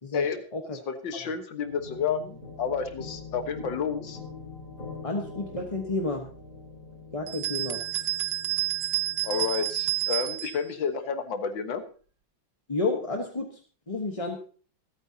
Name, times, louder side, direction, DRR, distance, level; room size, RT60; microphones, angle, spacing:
voice 1, 0.9-4.2 9.2-11.8, left 6 dB, 70° left, 8 dB, 2.1 m, -30 dB
sound 1, 1.6-10.1, left 4 dB, 50° left, 4.6 m, -44 dB
voice 2, 5.0-6.3 7.1-7.8 12.7-13.5 13.9-14.4, left 3 dB, 20° left, 1 dB, 1.0 m, -30 dB
sound 2, 7.3-10.6, right 14 dB, 65° right, 1.4 m, -29 dB
26.0 x 9.0 x 2.8 m, 0.40 s
omnidirectional pair, 2.1 m